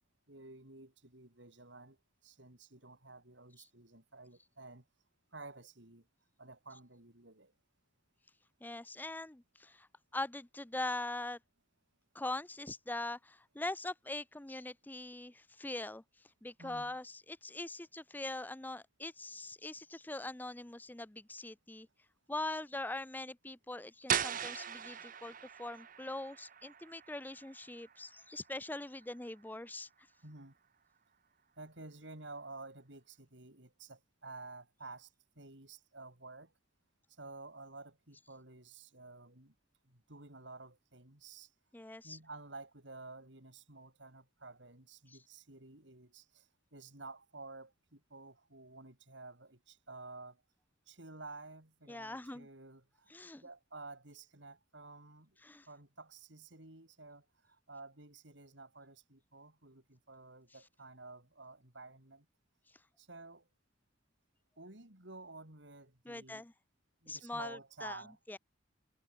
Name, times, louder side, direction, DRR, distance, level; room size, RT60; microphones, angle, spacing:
voice 1, 0.3-2.0 2.2-4.9 5.3-6.1 6.4-7.5 16.6-17.0 30.2-30.6 31.6-36.5 37.1-39.5 39.8-41.5 42.0-50.4 50.9-55.4 55.7-62.3 63.0-63.5 64.6-66.5 67.0-68.2, right 3 dB, 65° right, 4.3 m, -52 dB
voice 2, 8.6-11.4 12.1-21.9 22.3-29.9 41.7-42.2 45.1-45.2 51.9-52.5 53.1-53.4 55.4-55.7 62.7-62.8 66.1-66.5 67.1-68.0 68.3-68.4, left 2 dB, 10° left, 0.6 m, -42 dB
sound 1, 24.1-29.7, right 8 dB, 45° right, 1.3 m, -40 dB
head